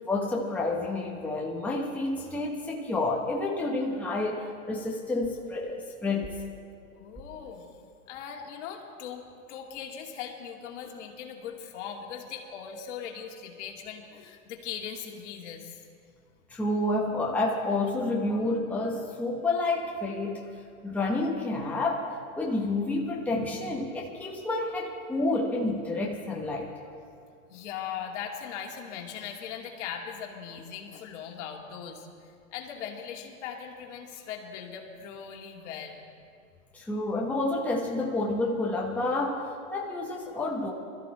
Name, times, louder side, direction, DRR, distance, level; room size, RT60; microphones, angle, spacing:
voice 1, 0.1-6.3 16.5-20.5 20.8-22.1 22.4-26.7 36.7-40.7, left 2 dB, 5° left, -2 dB, 1.3 m, -29 dB
voice 2, 6.9-7.8 8.1-15.8 27.5-32.1 32.5-36.1, left 8 dB, 50° left, 1 dB, 2.4 m, -39 dB
22.0 x 14.0 x 4.4 m, 2.4 s
hypercardioid pair, 125°, 44 cm